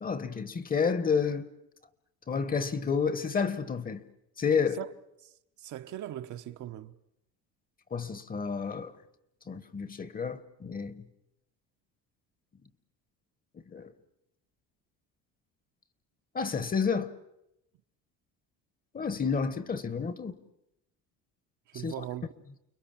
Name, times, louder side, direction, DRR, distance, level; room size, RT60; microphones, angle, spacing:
voice 1, 0.0-1.5 2.3-4.0 4.4-4.8 7.9-8.9 9.5-11.0 13.7-13.9 16.3-17.1 18.9-20.3 21.8-21.9, left 5 dB, 25° left, 1.2 m, -30 dB
voice 2, 5.6-6.9 21.7-22.3, right 13 dB, 55° right, 1.1 m, -39 dB
30.0 x 21.5 x 7.4 m
cardioid pair, 130°, 34 cm